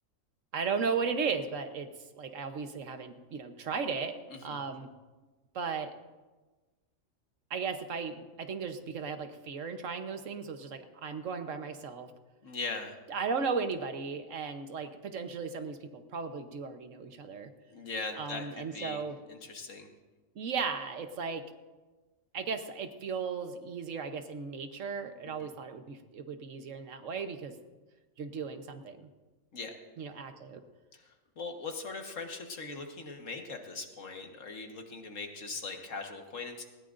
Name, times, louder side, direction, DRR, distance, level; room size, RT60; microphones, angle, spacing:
voice 1, 0.5-1.9 2.1-4.2 4.4-4.9 5.5-5.9 7.5-12.1 13.1-17.5 18.2-19.2 20.3-21.4 22.3-27.5 28.2-29.1 30.0-30.6, right 5 dB, 70° right, 8 dB, 1.3 m, -36 dB
voice 2, 12.4-13.0 17.7-19.0 19.3-19.9 25.2-25.3 29.5-29.7 30.9-31.0 31.4-36.6, left 4 dB, 70° left, 3 dB, 1.8 m, -40 dB
19.0 x 17.5 x 2.6 m, 1.2 s
omnidirectional pair, 1.4 m